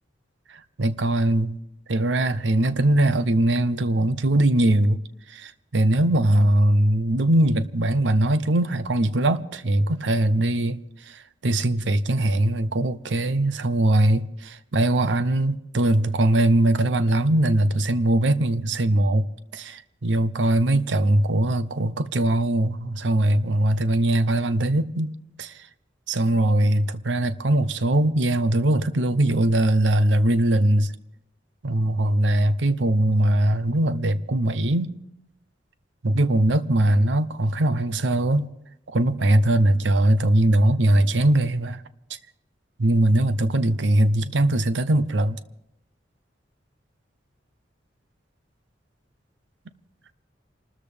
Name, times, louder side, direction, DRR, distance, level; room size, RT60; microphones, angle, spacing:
voice 1, 0.5-1.6 1.9-5.0 5.3-10.8 11.1-19.3 19.5-25.6 26.1-30.9 31.6-34.9 36.0-38.5 38.9-41.8 42.8-45.4, right 1 dB, 85° right, 0.7 m, -21 dB
28.0 x 13.5 x 3.5 m
head